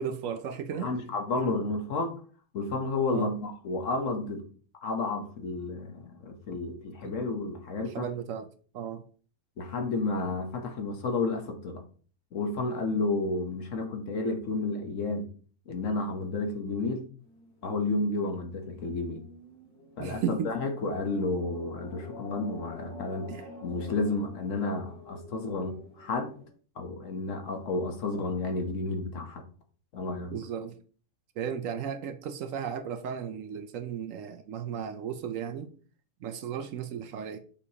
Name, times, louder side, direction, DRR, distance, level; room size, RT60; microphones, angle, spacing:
voice 1, 0.0-0.9 3.1-3.3 7.0-7.2 7.9-8.5 8.7-9.0 20.0-20.5 23.3-23.5 30.3-30.8 31.4-35.7 36.2-37.4, right 8 dB, 70° right, 0.9 m, -35 dB
voice 2, 0.7-2.2 2.5-4.4 4.8-8.1 9.6-11.8 12.3-15.3 15.7-17.1 17.6-19.3 20.0-23.3 23.6-26.3 26.8-29.4 29.9-30.3, left 3 dB, 60° left, 1.3 m, -31 dB
sound 1, 17.2-26.5, left 1 dB, 90° left, 3.7 m, -48 dB
7.1 x 4.9 x 2.8 m
omnidirectional pair, 1.6 m